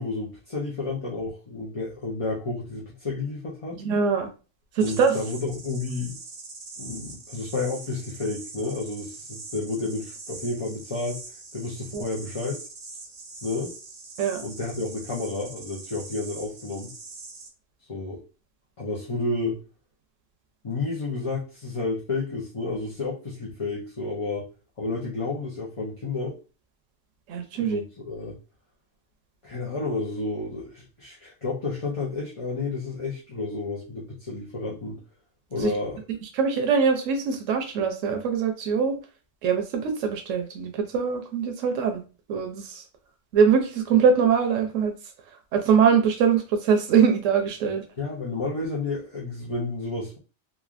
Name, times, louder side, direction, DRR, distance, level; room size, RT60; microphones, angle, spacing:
voice 1, 0.0-3.8 4.8-6.2 6.8-11.2 11.5-12.6 13.4-13.7 14.4-16.9 17.9-18.2 18.8-19.6 20.6-24.5 24.8-26.4 27.5-28.3 29.4-35.0 35.5-36.0 48.0-50.2, left 3 dB, 35° left, -5 dB, 0.6 m, -31 dB
voice 2, 3.8-4.3 4.7-5.1 11.9-12.1 14.2-14.4 27.3-27.8 35.5-35.7 36.3-39.0 39.4-42.0 42.3-42.8 43.3-44.9 45.5-47.8, right 6 dB, 90° right, 5 dB, 1.0 m, -22 dB
sound 1, 4.8-17.5, right 3 dB, 45° right, 0.7 m, -42 dB
3.2 x 2.4 x 2.4 m, 0.34 s
omnidirectional pair, 1.3 m